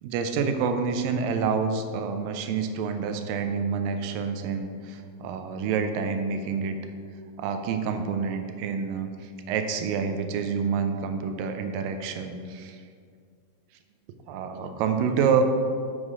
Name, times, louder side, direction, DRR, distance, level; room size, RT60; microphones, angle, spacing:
voice 1, 0.0-6.7 7.4-9.1 9.5-12.8 14.3-15.4, right 6 dB, 80° right, 7 dB, 2.3 m, -27 dB
7.4 x 6.4 x 4.8 m, 2.2 s
omnidirectional pair, 4.1 m